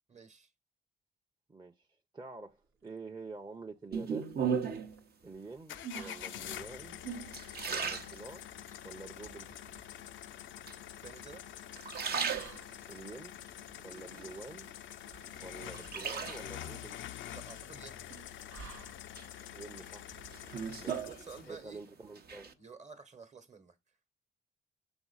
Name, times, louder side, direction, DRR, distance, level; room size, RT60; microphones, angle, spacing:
voice 1, 0.1-0.5 11.0-11.4 17.3-18.0 20.5-21.8 22.6-23.8, right 5 dB, 35° right, 1.2 m, -51 dB
voice 2, 1.5-1.9 2.1-4.3 5.2-7.0 7.6-8.5 8.8-9.5 12.9-13.4 13.8-14.7 15.4-17.0 19.5-20.2 20.8-21.1 21.5-22.5, right 3 dB, 20° right, 0.7 m, -47 dB
sound 1, 2.5-19.5, right 4 dB, 80° right, 1.1 m, -59 dB
sound 2, 3.9-5.0 5.8-6.3 6.8-8.8 9.3-9.9 10.7-11.3 11.7-13.0 13.5-14.7 15.1-16.7 18.1-18.7 19.2-21.8 22.0-22.5, right 6 dB, 50° right, 0.8 m, -37 dB
sound 3, 5.7-21.6, left 12 dB, 70° left, 0.4 m, -46 dB
6.1 x 4.0 x 4.0 m
supercardioid pair, 65°, 20 cm